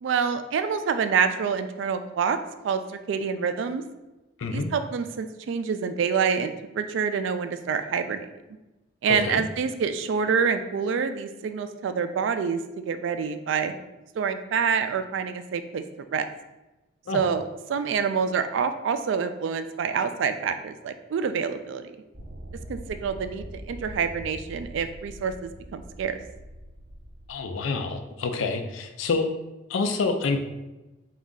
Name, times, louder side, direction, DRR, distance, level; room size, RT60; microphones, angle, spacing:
voice 1, 0.0-2.4 2.6-2.8 3.1-3.8 4.5-8.3 9.0-13.7 14.2-15.8 16.1-16.3 17.1-17.4 17.7-21.9 22.7-26.2, right 6 dB, 70° right, 10 dB, 0.3 m, -27 dB
voice 2, 9.1-9.4 17.1-17.2 27.3-29.3 29.7-30.4, left 4 dB, 85° left, 6 dB, 0.4 m, -27 dB
sound 1, 22.1-27.3, equal, 40° right, 0.8 m, -42 dB
4.0 x 2.4 x 3.6 m, 1.0 s
head